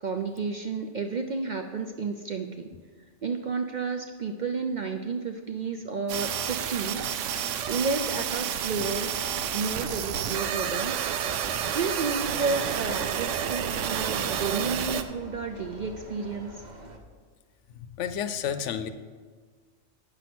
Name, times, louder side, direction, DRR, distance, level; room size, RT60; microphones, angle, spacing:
voice 1, 0.0-2.5 3.2-7.0 7.3-9.1 9.5-11.0 11.7-16.5, right 4 dB, 55° right, 5 dB, 0.5 m, -31 dB
sound 1, 6.1-15.0, right 9 dB, 85° right, 0.9 m, -30 dB
sound 2, 8.8-17.0, right 1 dB, 40° right, 0.9 m, -45 dB
voice 2, 17.7-18.9, left 8 dB, 80° left, 11 dB, 0.9 m, -31 dB
8.8 x 5.8 x 5.9 m, 1.5 s
omnidirectional pair, 1.2 m